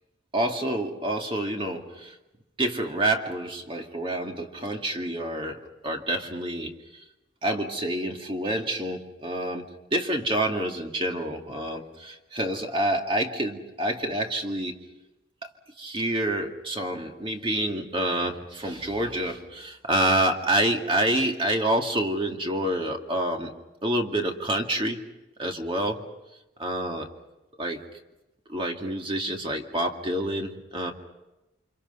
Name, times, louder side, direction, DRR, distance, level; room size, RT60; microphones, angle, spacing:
voice 1, 0.3-2.2 2.6-7.0 7.4-9.7 9.9-14.8 15.8-23.5 23.8-25.0 25.4-26.0 26.6-27.1 27.6-27.9 28.5-30.9, right 1 dB, 25° right, 2 dB, 2.2 m, -28 dB
30.0 x 25.5 x 5.6 m, 0.99 s
head